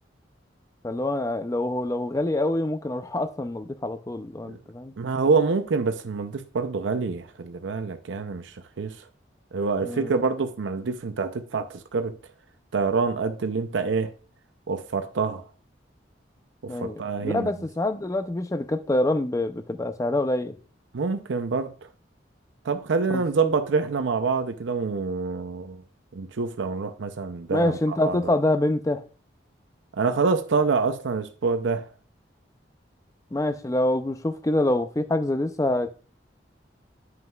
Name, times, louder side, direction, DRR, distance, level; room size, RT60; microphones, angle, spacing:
voice 1, 0.8-4.9 9.8-10.1 16.7-20.6 23.1-23.5 27.5-29.0 33.3-35.9, left 1 dB, 15° left, 0.4 m, -26 dB
voice 2, 5.0-9.0 9.5-12.2 12.7-14.1 14.7-15.4 16.6-17.5 20.9-21.7 22.6-25.8 26.1-28.3 29.9-31.9, right 4 dB, 85° right, 0.5 m, -26 dB
9.3 x 5.5 x 2.3 m
head